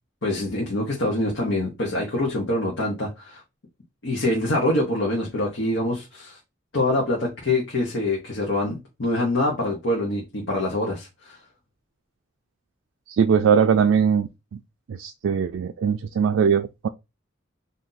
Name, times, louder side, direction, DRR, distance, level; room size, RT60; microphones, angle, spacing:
voice 1, 0.2-3.4 4.0-6.4 6.7-11.4, left 1 dB, 70° left, 0.9 m, -25 dB
voice 2, 13.1-14.6 14.9-16.9, right 6 dB, 80° right, 0.3 m, -21 dB
2.6 x 2.6 x 3.8 m
head